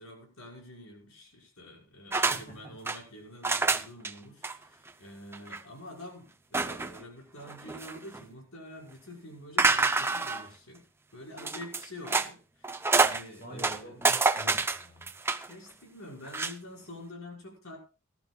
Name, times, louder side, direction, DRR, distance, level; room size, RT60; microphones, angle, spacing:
voice 1, 0.0-10.9 11.1-14.0 15.5-17.8, left 1 dB, 80° left, -1 dB, 5.6 m, -47 dB
sound 1, 2.1-2.4 2.7-3.0 3.4-4.1 4.4-4.6 4.9-5.0 5.3-5.6 6.5-7.0 7.5-8.2 9.6-10.5 11.4-12.3 12.6-13.2 13.6-15.5 16.2-16.5, right 3 dB, 10° right, 0.6 m, -27 dB
voice 2, 2.3-2.7 13.4-15.1, equal, 45° left, 2 dB, 7.0 m, -46 dB
19.0 x 13.0 x 2.4 m, 0.32 s
head